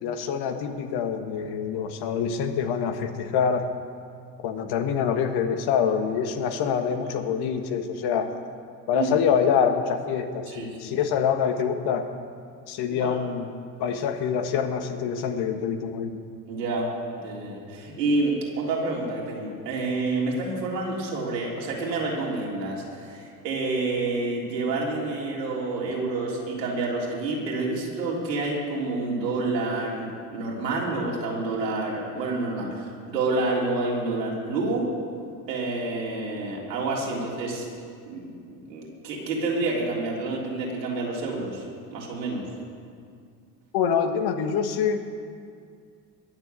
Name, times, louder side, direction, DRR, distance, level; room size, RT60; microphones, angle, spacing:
voice 1, 0.0-3.7 4.4-8.3 8.9-12.1 12.7-13.5 13.8-16.2 43.7-45.1, left 7 dB, 50° left, 7 dB, 1.5 m, -25 dB
voice 2, 10.5-11.0 12.9-13.2 16.5-16.9 17.2-34.9 35.5-37.7 38.0-38.3 38.7-41.7 41.9-42.4, right 2 dB, 80° right, -3 dB, 3.6 m, -28 dB
21.0 x 7.2 x 7.7 m, 2.3 s
hypercardioid pair, 70°, 49 cm